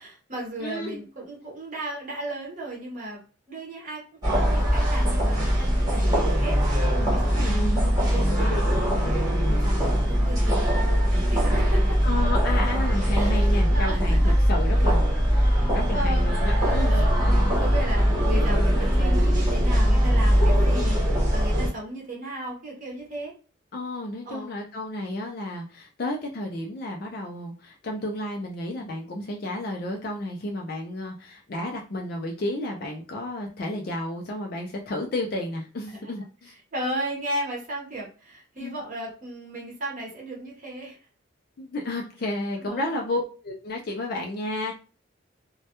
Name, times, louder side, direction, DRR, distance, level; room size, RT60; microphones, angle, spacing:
voice 1, 0.0-3.2 3.5-6.6 7.1-7.6 8.0-8.6 9.5-12.0 13.2-13.4 13.7-14.3 15.4-16.3 16.9-17.2 17.6-21.0 21.3-23.3 24.3-24.5 35.9-36.0 36.7-41.0 42.6-42.9, right 1 dB, 40° right, -2 dB, 0.7 m, -35 dB
voice 2, 0.6-1.0 7.4-7.6 12.0-14.2 14.5-17.3 23.7-36.5 38.6-38.8 41.6-44.7, left 1 dB, 45° left, 0 dB, 0.4 m, -32 dB
sound 1, 4.2-21.7, equal, 20° right, 1.0 m, -21 dB
2.2 x 2.1 x 2.8 m, 0.36 s
head